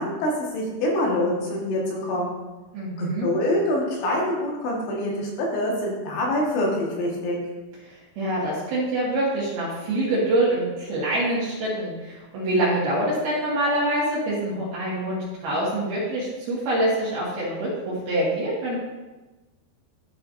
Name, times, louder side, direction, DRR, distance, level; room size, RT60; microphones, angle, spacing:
voice 1, 0.0-2.4 3.0-7.4, left 1 dB, 75° left, -2 dB, 3.8 m, -25 dB
voice 2, 2.7-3.3 7.8-18.8, right 1 dB, 60° right, -8 dB, 3.3 m, -25 dB
13.5 x 5.6 x 2.6 m, 1.1 s
omnidirectional pair, 5.3 m